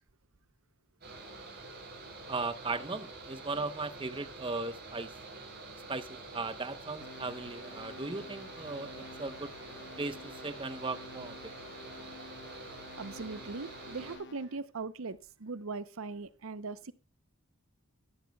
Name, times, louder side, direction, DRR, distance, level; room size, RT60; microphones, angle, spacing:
Mechanical fan, 1.0-14.2, right 3 dB, 50° right, 8.0 m, -47 dB
voice 1, 2.3-5.1 5.9-9.6 10.0-11.5, right 3 dB, 25° right, 0.8 m, -37 dB
sound 1, 7.0-14.6, left 3 dB, 55° left, 0.9 m, -50 dB
voice 2, 13.0-16.9, right 4 dB, 70° right, 0.7 m, -40 dB
21.0 x 12.0 x 2.3 m
head